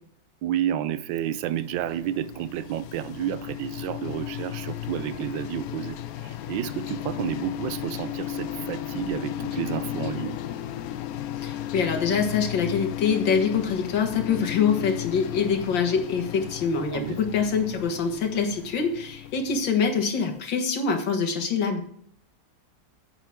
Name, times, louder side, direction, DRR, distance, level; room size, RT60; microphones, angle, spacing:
voice 1, 0.4-10.4 16.9-17.2, right 11 dB, 85° right, 1.3 m, -31 dB
sound 1, 1.3-20.3, left 11 dB, 70° left, 0.9 m, -35 dB
voice 2, 11.4-21.8, left 6 dB, 85° left, 2.2 m, -25 dB
10.0 x 8.1 x 3.6 m
omnidirectional pair, 2.0 m